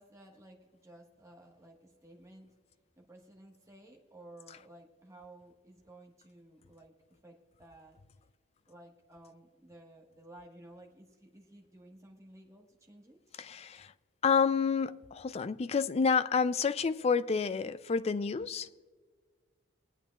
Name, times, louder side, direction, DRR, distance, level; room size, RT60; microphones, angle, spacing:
voice 1, 0.0-2.5 2.9-8.0 8.7-13.2, right 1 dB, 15° right, 1.4 m, -55 dB
voice 2, 13.4-13.9 14.2-18.7, left 5 dB, 30° left, 0.3 m, -29 dB
23.5 x 8.7 x 2.3 m
head